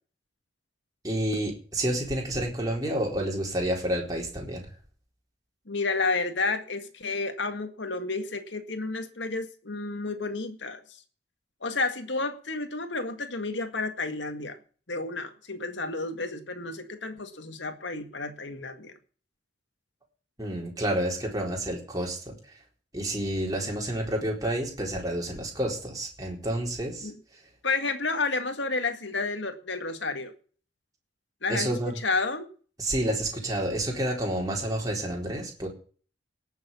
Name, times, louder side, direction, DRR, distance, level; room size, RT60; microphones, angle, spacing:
voice 1, 1.0-4.6 20.4-22.3 22.9-27.1 31.5-32.0 32.8-35.7, right 1 dB, 20° right, -1 dB, 4.0 m, -29 dB
voice 2, 5.7-11.0 11.6-14.6 14.9-18.9 27.0-27.1 27.6-30.3 31.4-32.5, left 3 dB, 75° left, 7 dB, 2.0 m, -31 dB
18.5 x 7.1 x 7.2 m, 0.42 s
head